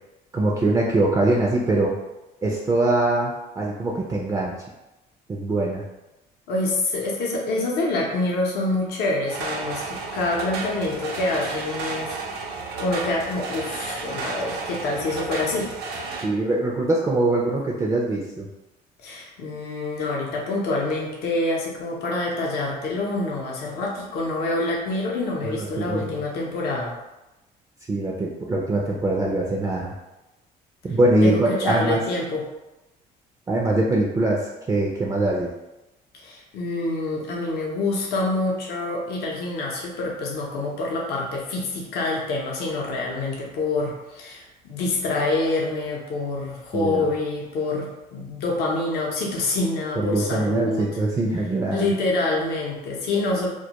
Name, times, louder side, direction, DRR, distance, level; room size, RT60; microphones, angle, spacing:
voice 1, 0.3-2.0 2.4-4.5 5.3-5.8 16.2-18.5 25.4-26.1 27.9-29.9 30.8-32.0 33.5-34.4 34.7-35.5 46.7-47.1 50.0-51.9, right 2 dB, 20° right, -2 dB, 0.3 m, -22 dB
voice 2, 6.5-12.2 12.8-15.7 19.0-26.9 31.2-32.4 36.2-50.9 51.7-53.5, left 2 dB, 75° left, -2 dB, 0.6 m, -26 dB
sound 1, 9.3-16.3, right 3 dB, 80° right, 0.5 m, -32 dB
2.2 x 2.1 x 2.8 m, 0.99 s
cardioid pair, 110°, 17 cm